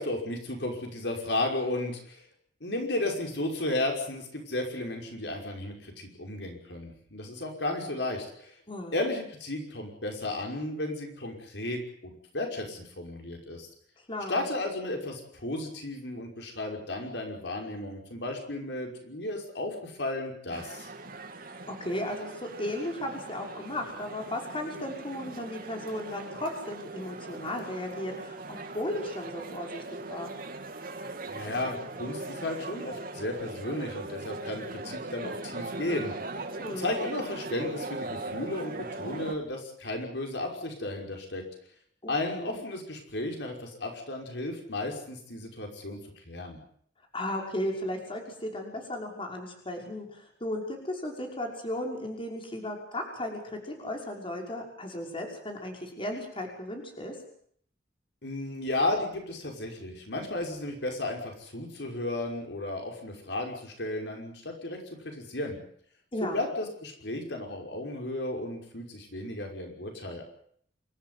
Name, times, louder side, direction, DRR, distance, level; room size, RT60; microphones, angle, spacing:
voice 1, 0.0-2.3 2.6-8.6 8.9-13.7 14.3-20.9 31.3-36.1 36.8-41.4 42.1-46.0 46.3-46.6 58.2-64.8 65.0-65.6 66.2-70.2, left 2 dB, 75° left, 3 dB, 5.7 m, -34 dB
voice 2, 8.7-9.0 14.1-14.4 21.4-29.8 30.1-30.3 36.6-36.9 42.0-42.6 47.1-57.1 66.1-66.4, left 1 dB, 30° left, 2 dB, 5.9 m, -35 dB
sound 1, 20.5-39.3, right 2 dB, 55° right, 2.7 m, -40 dB
27.5 x 14.0 x 9.6 m, 0.64 s
head